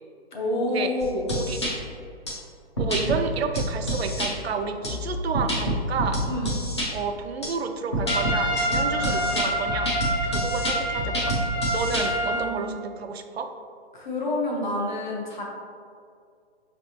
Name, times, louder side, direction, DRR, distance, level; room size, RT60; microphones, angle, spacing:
voice 1, 0.3-1.3 6.2-6.5 8.9-9.5 12.2-12.7 13.9-15.4, left 1 dB, 45° left, -2 dB, 0.8 m, -29 dB
sound 1, 1.0-1.7 2.3-2.4 2.8-3.2 3.6-4.3 4.8-6.9 7.4-7.5 7.9-12.0, equal, 25° left, 0.5 m, -27 dB
voice 2, 2.8-6.2 6.9-9.9 10.2-13.5, right 5 dB, 70° right, 6 dB, 0.5 m, -30 dB
Trumpet, 8.1-12.5, right 1 dB, 85° left, 1.0 m, -27 dB
4.9 x 3.3 x 2.8 m, 2.3 s
hypercardioid pair, 175°, 33 cm